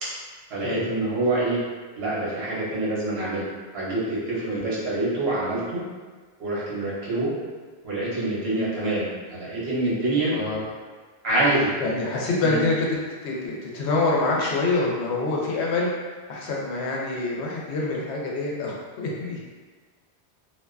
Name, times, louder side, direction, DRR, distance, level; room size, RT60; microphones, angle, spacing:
voice 1, 0.5-1.6 2.0-3.4 3.7-5.8 6.4-7.3 7.8-10.4 11.2-11.7 12.4-12.6, right 2 dB, 70° right, -8 dB, 1.1 m, -26 dB
voice 2, 10.3-10.6 11.8-12.9 13.2-15.9 16.3-19.4, left 3 dB, 85° left, -3 dB, 0.9 m, -26 dB
2.5 x 2.2 x 2.3 m, 1.4 s
omnidirectional pair, 1.1 m